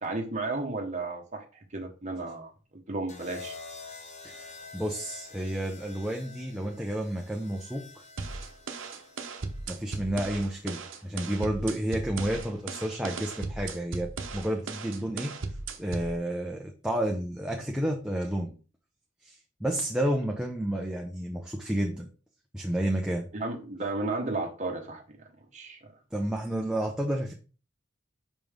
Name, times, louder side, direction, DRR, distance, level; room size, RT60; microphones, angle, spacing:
voice 1, 0.0-2.5 2.9-3.6 23.3-25.2 25.5-25.9, right 2 dB, 40° right, 1.1 m, -33 dB
sound 1, 3.1-11.2 12.4-12.8, left 4 dB, 35° left, 1.1 m, -48 dB
voice 2, 4.2-8.0 9.7-15.3 15.8-18.5 19.2-22.1 22.5-23.3 26.1-27.3, right 1 dB, 5° right, 0.7 m, -31 dB
sound 2, 8.2-16.2, right 3 dB, 80° right, 0.9 m, -37 dB
5.4 x 5.2 x 3.5 m
head